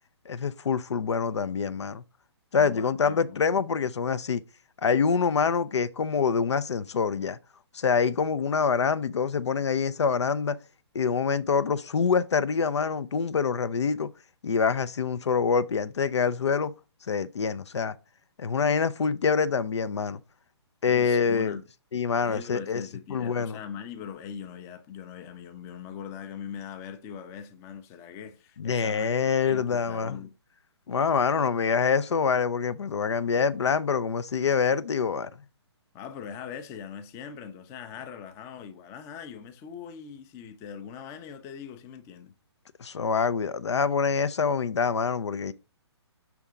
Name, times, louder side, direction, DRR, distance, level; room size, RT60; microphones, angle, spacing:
voice 1, 0.3-2.0 2.5-4.4 4.8-7.4 7.7-10.6 10.9-14.1 14.4-16.7 17.1-18.0 18.4-20.2 20.8-21.6 21.9-22.8 23.1-23.6 28.6-30.2 30.9-35.3 42.8-45.5, left 6 dB, 80° left, 0.5 m, -25 dB
voice 2, 2.6-3.4 20.9-21.6 22.2-29.1 29.5-30.3 35.9-42.3, left 7 dB, 20° left, 0.5 m, -41 dB
5.8 x 3.5 x 4.9 m
hypercardioid pair, 140°, 14 cm